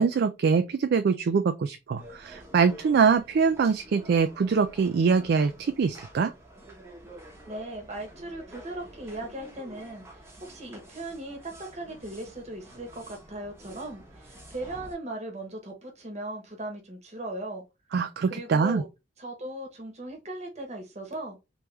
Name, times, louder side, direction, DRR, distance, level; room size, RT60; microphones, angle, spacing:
voice 1, 0.0-6.3 17.9-18.8, right 5 dB, 60° right, 0.3 m, -24 dB
sound 1, 2.0-14.9, right 1 dB, 15° right, 1.0 m, -48 dB
voice 2, 7.5-17.6 18.3-18.9 19.2-21.4, right 1 dB, 40° right, 1.1 m, -38 dB
3.4 x 3.1 x 3.1 m
head